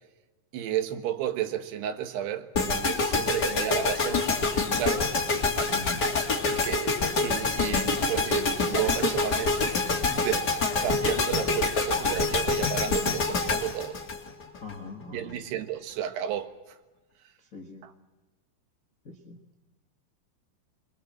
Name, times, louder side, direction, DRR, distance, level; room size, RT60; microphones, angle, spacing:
voice 1, 0.5-4.3 4.6-5.1 6.5-10.5 10.8-14.0 15.1-16.5 17.8-17.9, right 11 dB, 70° right, 3.3 m, -32 dB
sound 1, 2.5-14.7, left 3 dB, 30° left, 2.2 m, -26 dB
voice 2, 5.7-6.0 14.6-15.4 17.4-17.9 19.0-19.4, left 3 dB, 75° left, 0.7 m, -41 dB
24.5 x 23.0 x 7.6 m
omnidirectional pair, 5.1 m